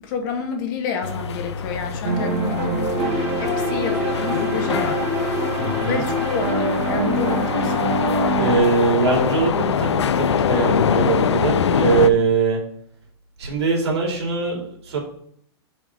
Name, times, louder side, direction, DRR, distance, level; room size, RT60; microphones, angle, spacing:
voice 1, 0.0-5.0 5.4-8.1, left 5 dB, 50° left, 3 dB, 1.7 m, -29 dB
sound 1, 1.0-12.1, left 7 dB, 90° left, 0.5 m, -24 dB
sound 2, 2.0-8.6, right 1 dB, 45° right, 2.1 m, -24 dB
voice 2, 5.6-6.0 8.4-12.6 13.4-15.0, right 4 dB, 80° right, 0 dB, 2.9 m, -21 dB
5.6 x 5.0 x 5.5 m, 0.63 s
hypercardioid pair, 130°, 14 cm